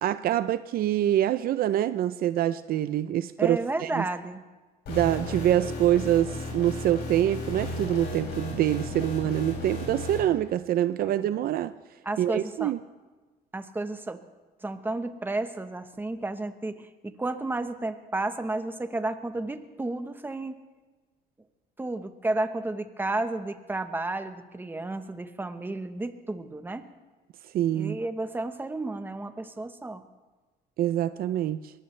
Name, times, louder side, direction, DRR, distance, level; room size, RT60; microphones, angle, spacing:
voice 1, 0.0-4.0 4.9-11.7 12.2-12.8 27.5-28.0 30.8-31.7, right 12 dB, 60° right, 0.5 m, -25 dB
voice 2, 3.4-4.4 11.0-11.2 12.0-12.7 13.5-14.2 14.6-20.6 21.8-26.9 27.7-30.0, right 2 dB, 10° right, 1.1 m, -32 dB
sound 1, 4.9-10.2, left 2 dB, 70° left, 6.6 m, -35 dB
22.5 x 19.0 x 3.3 m
cardioid pair, 110°, 17 cm